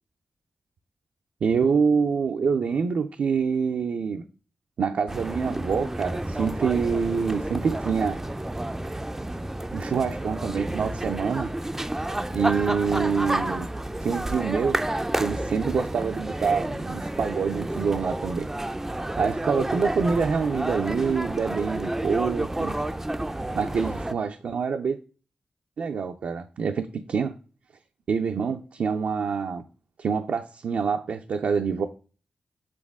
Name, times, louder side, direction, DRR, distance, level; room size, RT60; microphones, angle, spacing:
voice 1, 1.4-4.2 4.8-8.2 9.7-11.5 12.3-13.7 14.0-14.8 15.2-18.5 19.2-22.8 23.6-25.0 25.8-27.3 28.1-29.6 30.0-31.9, right 6 dB, 80° right, 0.5 m, -26 dB
sound 1, 5.1-24.1, right 1 dB, 15° right, 0.4 m, -30 dB
7.5 x 3.9 x 3.6 m
cardioid pair, 65°, 3 cm